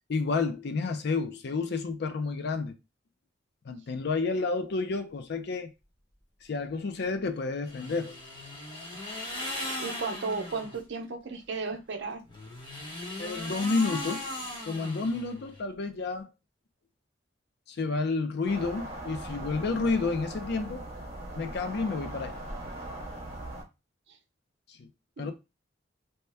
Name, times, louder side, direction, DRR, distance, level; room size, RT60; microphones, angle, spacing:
voice 1, 0.1-2.8 3.7-5.7 6.5-8.2 13.2-14.3 14.6-16.3 17.7-20.9 21.3-22.3 24.8-24.9 25.2-25.3, left 4 dB, 60° left, 0.5 m, -30 dB
sound 1, 7.7-10.8 12.2-15.6, left 1 dB, 25° left, 1.0 m, -38 dB
voice 2, 9.8-12.2 24.1-24.2 25.2-25.3, right 4 dB, 65° right, 0.6 m, -34 dB
sound 2, 18.5-23.6, right 1 dB, 35° right, 0.9 m, -40 dB
2.8 x 2.1 x 3.3 m
head